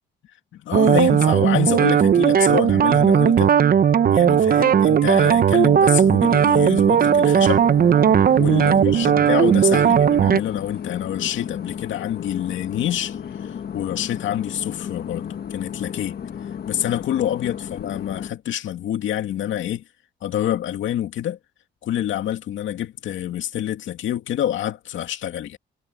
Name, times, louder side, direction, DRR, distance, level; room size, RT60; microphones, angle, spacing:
voice 1, 0.5-3.5 4.1-7.6 8.4-16.2 16.7-19.8 20.2-21.4 21.8-25.6, left 11 dB, 75° left, 2.4 m, -27 dB
sound 1, 0.7-10.4, right 8 dB, 45° right, 0.8 m, -16 dB
sound 2, 7.0-18.3, left 8 dB, 50° left, 1.3 m, -33 dB
cardioid pair, 90°, 20 cm